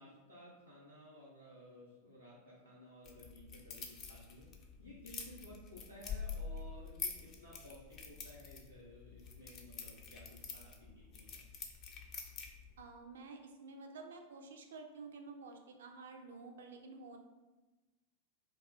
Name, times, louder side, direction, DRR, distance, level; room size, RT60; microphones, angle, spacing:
voice 1, 0.0-11.4, equal, 90° right, -7 dB, 0.8 m, -56 dB
sound 1, 3.0-12.8, left 6 dB, 35° left, 0.5 m, -47 dB
voice 2, 12.8-17.2, right 3 dB, 60° right, 3 dB, 0.4 m, -51 dB
2.3 x 2.3 x 3.9 m, 1.2 s
figure-of-eight pair, 90°, 0 cm